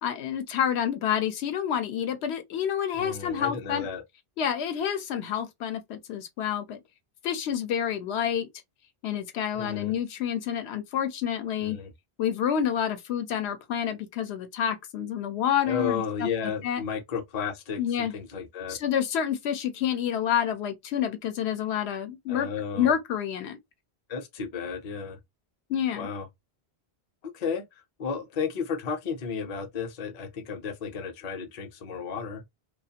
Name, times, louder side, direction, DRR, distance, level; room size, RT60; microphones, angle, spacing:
voice 1, 0.0-3.9 4.4-6.8 7.2-8.5 9.0-11.8 12.2-16.8 17.8-18.1 18.7-22.5 22.7-23.6 25.7-26.1, left 9 dB, 85° left, 0.9 m, -28 dB
voice 2, 3.0-4.0 9.6-9.9 11.6-11.9 15.6-18.8 22.3-22.9 24.1-25.2 26.0-26.3 27.3-27.6 28.0-32.4, left 6 dB, 45° left, 0.6 m, -33 dB
2.4 x 2.3 x 2.7 m
omnidirectional pair, 1.1 m